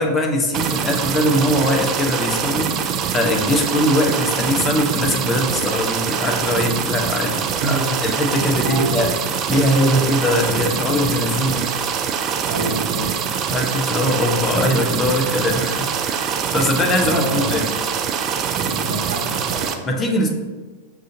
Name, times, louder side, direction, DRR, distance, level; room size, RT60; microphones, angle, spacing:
voice 1, 0.0-9.1 9.5-11.6 13.5-17.7 19.8-20.3, left 1 dB, 20° left, 2 dB, 0.6 m, -21 dB
sound 1, 0.5-19.7, right 7 dB, 35° right, 0.3 m, -24 dB
voice 2, 8.3-9.0 12.4-13.2 17.0-17.7 18.6-19.7, right 3 dB, 60° right, -5 dB, 0.7 m, -27 dB
6.2 x 2.5 x 2.6 m, 1.3 s
figure-of-eight pair, 90°, 0 cm